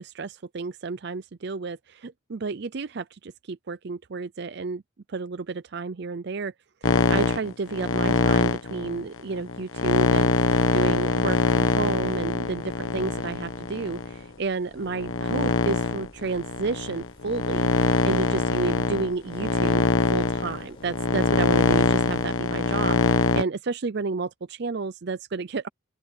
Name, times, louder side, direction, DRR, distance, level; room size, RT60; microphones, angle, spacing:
voice 1, 0.0-4.8 5.1-6.5 6.8-25.7, right 4 dB, 55° right, 0.5 m, -32 dB
sound 1, 6.8-14.2 14.8-23.4, left 3 dB, 85° left, 1.1 m, -23 dB
sound 2, 10.4-22.3, left 1 dB, 25° left, 5.2 m, -52 dB
open air
head